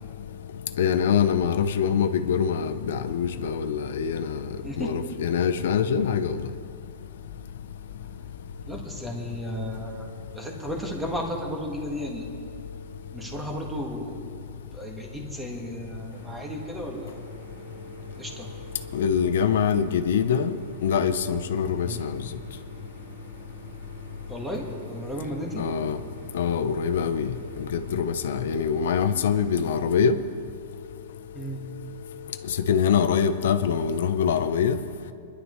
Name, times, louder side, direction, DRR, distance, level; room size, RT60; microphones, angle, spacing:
voice 1, 0.8-4.4 4.8-6.4 18.9-20.5 20.8-22.2 25.6-26.0 26.3-27.3 27.9-30.2 32.7-34.8, left 7 dB, 75° left, 10 dB, 0.6 m, -24 dB
voice 2, 8.7-12.3 13.1-14.2 14.7-17.2 18.2-18.5 21.8-22.0 24.3-25.6 31.3-31.6, equal, 5° right, 0 dB, 1.5 m, -34 dB
sound 1, 16.1-30.1, equal, 50° right, 2.6 m, -46 dB
25.0 x 11.0 x 3.1 m, 2.3 s
supercardioid pair, 170°, 0 cm